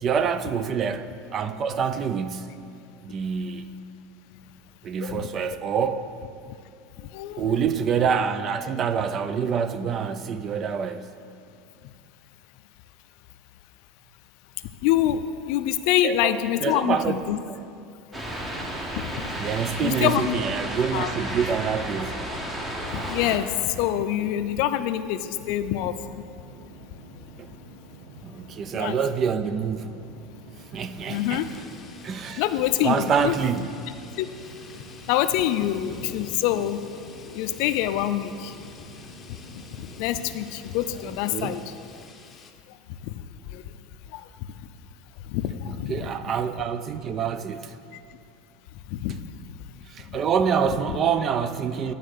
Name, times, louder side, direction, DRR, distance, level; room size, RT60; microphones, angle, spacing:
voice 1, 0.0-2.5 3.0-3.7 4.8-6.1 7.4-11.1 16.0-16.3 16.6-17.2 17.5-17.6 19.4-22.3 27.4-27.5 28.2-30.0 30.7-31.4 32.0-32.4 32.8-33.7 41.3-41.6 45.7-47.7 49.9-51.9, right 7 dB, 35° right, 0.4 m, -26 dB
voice 2, 7.1-7.6 14.8-17.4 19.0-19.1 19.8-20.4 20.9-21.1 22.9-25.9 28.7-29.0 31.1-31.5 32.4-33.3 34.2-34.3 35.1-36.8 37.3-38.5 39.8-41.7 43.5-43.6 44.1-44.2 45.3-46.1 48.9-49.2 50.1-50.2, left 12 dB, 65° left, 0.4 m, -25 dB
sound 1, 18.1-23.4, right 1 dB, 15° right, 1.0 m, -32 dB
sound 2, 25.7-41.6, right 1 dB, 80° right, 1.8 m, -47 dB
sound 3, 31.1-42.5, left 4 dB, 25° left, 0.7 m, -47 dB
11.0 x 3.9 x 6.5 m
supercardioid pair, 120°, 0 cm